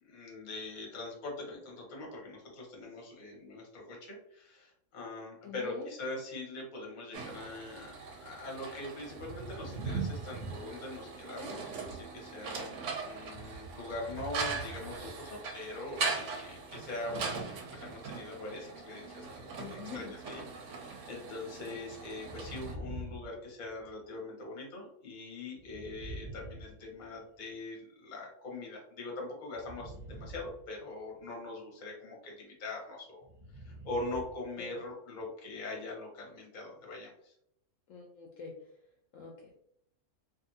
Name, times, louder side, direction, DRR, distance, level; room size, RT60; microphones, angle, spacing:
voice 1, 0.0-17.4 17.7-33.2 33.5-37.3, left 2 dB, 40° left, -1 dB, 0.8 m, -42 dB
voice 2, 5.4-5.9 19.6-20.1 34.6-34.8 37.9-38.6 39.1-39.4, left 5 dB, 70° left, -1 dB, 0.8 m, -44 dB
sound 1, 7.1-22.7, right 4 dB, 65° right, 0.8 m, -40 dB
sound 2, 22.2-24.1 25.5-27.4 29.5-31.2 33.2-34.5 34.8-34.9, right 1 dB, 35° right, 0.6 m, -46 dB
2.5 x 2.5 x 2.6 m, 0.72 s
omnidirectional pair, 1.6 m